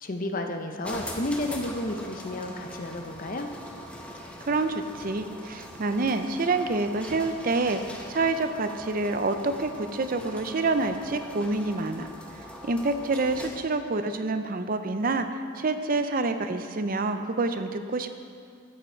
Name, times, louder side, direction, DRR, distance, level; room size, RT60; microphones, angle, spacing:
voice 1, 0.0-3.5, left 1 dB, 45° left, 5 dB, 0.7 m, -31 dB
sound 1, 0.8-13.8, left 1 dB, 5° left, 0.8 m, -42 dB
voice 2, 4.5-12.1 12.6-18.2, right 3 dB, 45° right, 8 dB, 0.6 m, -27 dB
13.0 x 7.6 x 4.5 m, 2.3 s
head